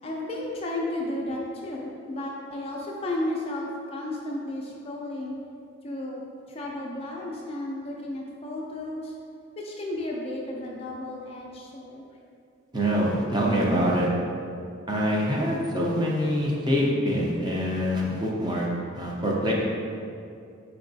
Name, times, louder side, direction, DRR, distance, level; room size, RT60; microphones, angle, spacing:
voice 1, 0.0-5.4 5.8-6.2 6.5-12.0, left 1 dB, 30° left, -2 dB, 0.4 m, -33 dB
voice 2, 12.7-14.1 14.9-18.7 18.9-19.5, equal, 20° right, -4 dB, 0.5 m, -25 dB
4.4 x 4.0 x 2.6 m, 2.5 s
head